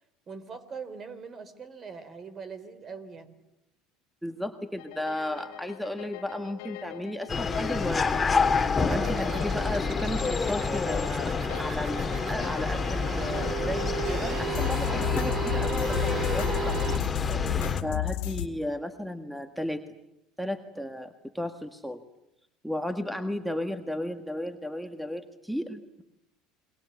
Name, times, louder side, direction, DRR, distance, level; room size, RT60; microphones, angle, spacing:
voice 1, 0.3-3.3 8.8-9.3 14.1-14.4 17.2-17.8 20.8-20.9, right 5 dB, 40° right, 13 dB, 3.7 m, -42 dB
voice 2, 4.2-8.1 8.9-16.9 17.8-19.8 20.4-22.0 22.6-26.0, left 1 dB, ahead, 8 dB, 1.7 m, -34 dB
sound 1, 4.8-18.5, left 15 dB, 75° left, 2.0 m, -35 dB
sound 2, 7.3-17.8, left 4 dB, 20° left, 2.2 m, -28 dB
sound 3, 8.8-17.0, right 10 dB, 55° right, 2.0 m, -36 dB
30.0 x 22.5 x 8.4 m, 0.85 s
hypercardioid pair, 85°, 0 cm